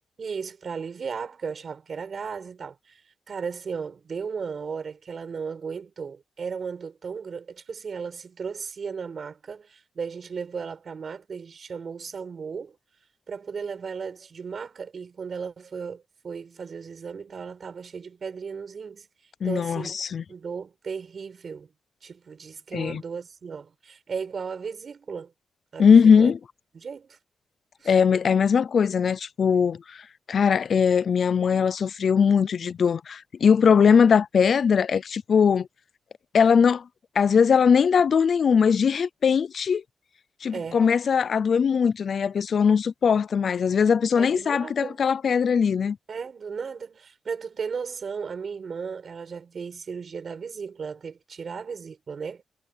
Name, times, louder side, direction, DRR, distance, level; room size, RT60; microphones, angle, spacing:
voice 1, 0.2-3.0 3.3-12.8 13.3-19.1 19.4-20.0 20.3-21.7 22.0-25.3 25.7-26.3 26.7-27.2 27.8-27.9 40.5-40.8 44.2-45.0 46.1-52.4, right 6 dB, 45° right, 6.8 m, -35 dB
voice 2, 19.4-20.2 22.7-23.0 25.8-26.4 27.9-35.7 36.3-36.9 37.2-39.8 40.4-46.0, left 6 dB, 50° left, 0.5 m, -20 dB
wide cardioid pair, 165°, 0 cm